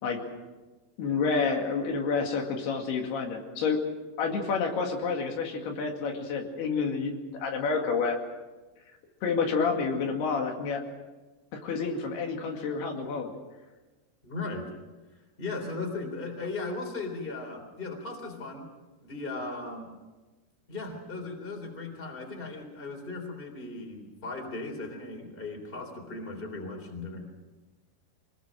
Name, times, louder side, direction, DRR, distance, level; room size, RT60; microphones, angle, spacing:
voice 1, 1.0-3.8 4.2-7.1 7.4-8.2 9.2-10.8 11.5-13.3, left 5 dB, 85° left, 2 dB, 4.3 m, -29 dB
voice 2, 14.2-14.7 15.4-18.7 19.0-19.9 20.7-27.3, left 3 dB, 15° left, 3 dB, 3.3 m, -37 dB
25.0 x 19.5 x 6.3 m, 1.2 s
omnidirectional pair, 4.5 m